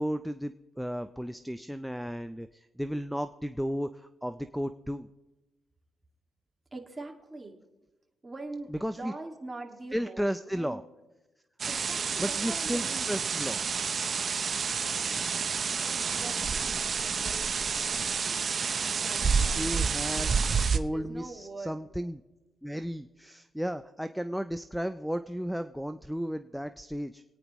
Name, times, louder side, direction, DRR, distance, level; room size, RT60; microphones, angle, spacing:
voice 1, 0.0-5.1 8.8-9.1 9.9-10.8 12.2-13.6 19.4-20.3 20.7-22.2 22.6-27.2, equal, ahead, 8 dB, 0.4 m, -34 dB
voice 2, 6.7-7.6 8.2-10.8 11.7-13.3 15.0-18.4 18.9-19.7 20.0-20.3 20.9-21.7, right 2 dB, 20° right, 2 dB, 2.1 m, -44 dB
sound 1, 11.6-20.8, right 5 dB, 45° right, 0.6 m, -29 dB
27.5 x 9.4 x 3.1 m, 1.1 s
cardioid pair, 90°, 0 cm